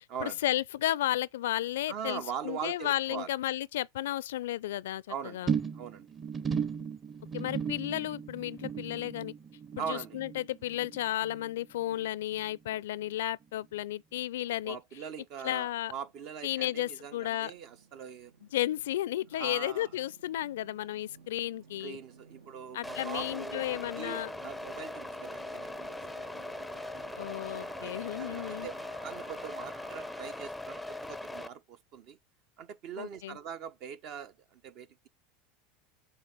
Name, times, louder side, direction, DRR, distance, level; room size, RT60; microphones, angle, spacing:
voice 1, 0.2-5.0 5.3-5.6 7.3-9.3 9.9-14.8 15.4-15.9 16.4-17.5 18.5-22.0 22.7-24.3 27.2-28.7 33.0-33.4, left 14 dB, 75° left, 0.4 m, -33 dB
voice 2, 1.9-3.3 5.1-6.1 9.8-10.2 14.6-18.3 19.3-19.9 21.8-26.4 27.8-27.9 28.2-28.7 29.0-32.2 32.6-35.1, right 8 dB, 55° right, 1.1 m, -42 dB
sound 1, 5.5-12.1 12.3-12.7 13.1-13.2, right 6 dB, 25° right, 1.0 m, -36 dB
sound 2, 15.3-30.5, right 5 dB, 80° right, 1.5 m, -55 dB
sound 3, 22.8-31.5, left 2 dB, 5° left, 0.5 m, -40 dB
7.4 x 2.9 x 4.6 m
hypercardioid pair, 90°, 0 cm